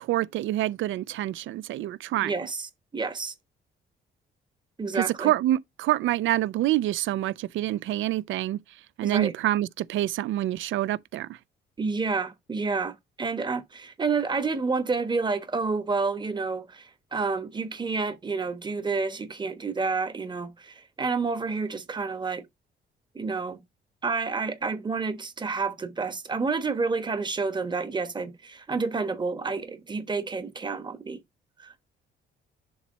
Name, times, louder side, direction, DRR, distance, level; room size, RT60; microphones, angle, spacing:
voice 1, 0.0-2.3 4.9-8.6 9.0-11.3, right 14 dB, 75° right, 0.5 m, -26 dB
voice 2, 2.2-3.3 4.8-5.3 9.0-9.3 11.8-22.4 23.1-23.6 24.0-31.2 31.6-31.7, right 4 dB, 20° right, 1.1 m, -29 dB
7.1 x 2.9 x 5.4 m
cardioid pair, 90°, 20 cm